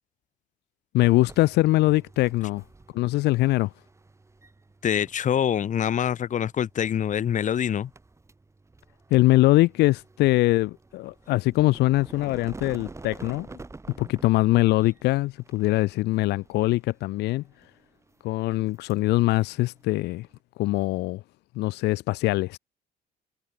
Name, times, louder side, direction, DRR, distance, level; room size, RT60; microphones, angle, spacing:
voice 1, 0.9-2.6 2.9-3.7 9.1-13.5 14.0-17.4 18.2-20.3 20.6-21.2 21.5-22.6, left 19 dB, 85° left, 1.3 m, -22 dB
sound 1, 1.0-20.4, right 3 dB, 15° right, 5.6 m, -49 dB
voice 2, 4.8-7.9, left 9 dB, 45° left, 1.8 m, -25 dB
cardioid pair, 110°, 17 cm